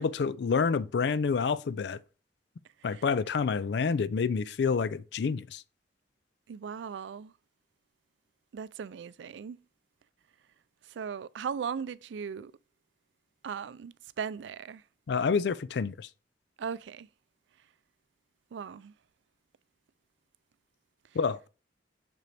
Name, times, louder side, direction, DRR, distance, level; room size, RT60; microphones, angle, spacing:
voice 1, 0.0-2.0 2.8-5.6 15.1-16.1 21.1-21.5, left 5 dB, 65° left, 0.4 m, -28 dB
voice 2, 6.5-7.3 8.5-9.6 10.9-12.5 13.4-14.8 16.6-17.1 18.5-18.9, right 7 dB, 85° right, 0.4 m, -38 dB
6.7 x 6.1 x 3.3 m
head